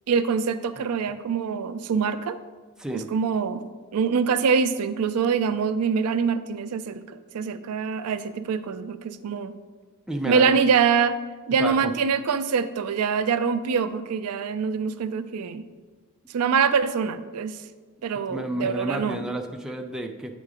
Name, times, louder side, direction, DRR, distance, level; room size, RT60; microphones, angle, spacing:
voice 1, 0.1-2.4 2.9-7.0 7.3-9.6 10.3-11.2 11.5-15.6 16.3-17.6 18.0-19.2, right 6 dB, 90° right, 12 dB, 0.4 m, -24 dB
voice 2, 10.1-10.6 11.6-11.9 18.3-20.3, right 1 dB, 5° right, 3 dB, 0.4 m, -30 dB
8.2 x 3.8 x 4.9 m, 1.4 s
head